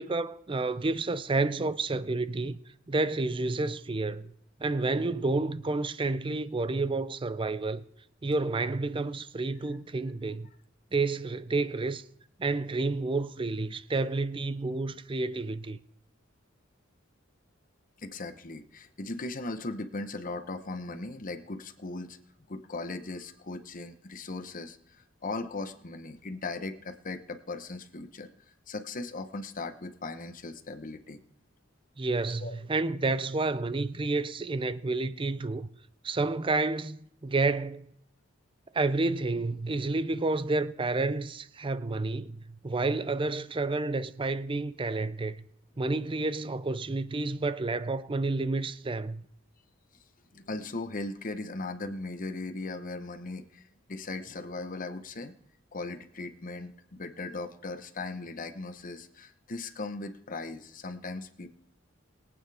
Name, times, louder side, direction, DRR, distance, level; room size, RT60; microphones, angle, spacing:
voice 1, 0.0-2.6 2.9-4.3 4.6-7.8 8.2-10.5 10.9-12.0 12.4-15.8 32.0-35.7 36.0-37.9 38.7-45.4 45.8-49.2, right 3 dB, 25° right, 0.5 m, -30 dB
voice 2, 18.0-22.2 22.5-28.3 28.7-31.2 32.4-32.5 50.3-53.6 53.9-55.3 55.7-61.5, left 3 dB, 45° left, 1.0 m, -38 dB
22.0 x 9.0 x 3.5 m
head